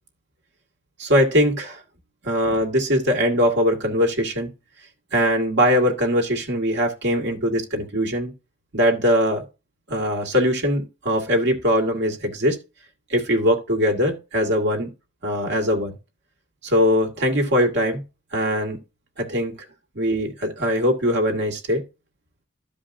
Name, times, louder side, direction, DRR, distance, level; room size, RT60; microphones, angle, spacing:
voice 1, 1.0-1.8 2.2-4.5 5.1-8.3 8.7-9.4 9.9-12.6 13.1-14.9 15.2-15.9 16.6-18.0 18.3-18.8 19.2-19.5 20.0-21.8, equal, 55° right, 2.1 m, -21 dB
14.0 x 5.1 x 2.7 m
head